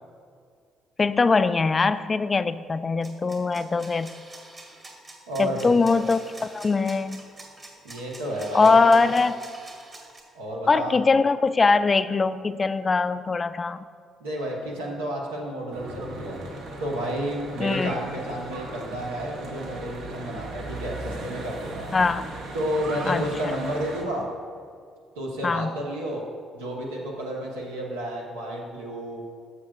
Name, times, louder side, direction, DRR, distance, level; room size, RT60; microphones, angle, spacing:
voice 1, 1.0-4.1 5.4-6.2 6.5-7.2 8.5-9.3 10.7-13.8 17.6-17.9 21.9-22.3 23.1-23.2 25.4-25.7, left 4 dB, 30° left, 13 dB, 0.3 m, -21 dB
sound 1, 3.0-10.2, right 2 dB, 35° right, 1.9 m, -45 dB
voice 2, 5.3-5.8 7.8-8.8 10.3-11.0 14.2-16.4 16.8-21.9 22.5-24.3 25.2-26.2 26.5-29.2, equal, 75° right, -2 dB, 1.2 m, -31 dB
Church bell / Traffic noise roadway noise, 15.7-24.0, right 2 dB, 60° right, 1.0 m, -37 dB
14.0 x 6.4 x 2.5 m, 2.2 s
figure-of-eight pair, 45°, 0 cm